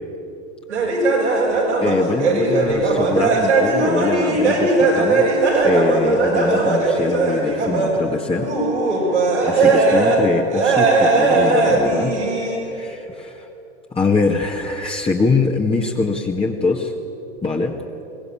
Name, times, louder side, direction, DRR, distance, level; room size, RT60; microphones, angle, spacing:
sound 1, 0.7-8.1 8.4-10.2 10.5-12.6, right 3 dB, 85° right, 6.1 m, -18 dB
voice 1, 1.8-5.3 5.6-8.5 9.4-12.2 12.6-12.9 13.9-16.9 17.4-17.8, left 3 dB, 15° left, 0 dB, 1.9 m, -22 dB
23.0 x 19.5 x 8.9 m, 2.9 s
hypercardioid pair, 85°, 33 cm